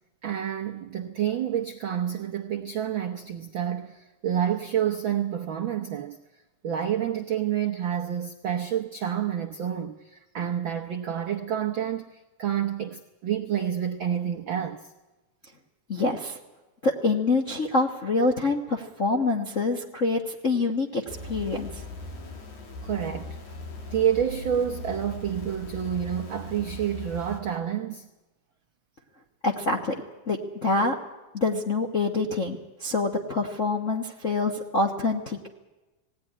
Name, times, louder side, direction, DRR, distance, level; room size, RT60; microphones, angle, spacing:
voice 1, 0.2-6.2 6.6-14.9 22.8-23.6 23.9-28.1, right 9 dB, 85° right, 1.0 m, -29 dB
voice 2, 15.9-16.4 16.8-21.8 29.4-29.9 30.3-30.9 31.3-35.5, left 3 dB, 55° left, 0.8 m, -26 dB
sound 1, 21.1-27.4, left 2 dB, 75° left, 4.3 m, -39 dB
19.5 x 16.5 x 9.9 m
omnidirectional pair, 3.5 m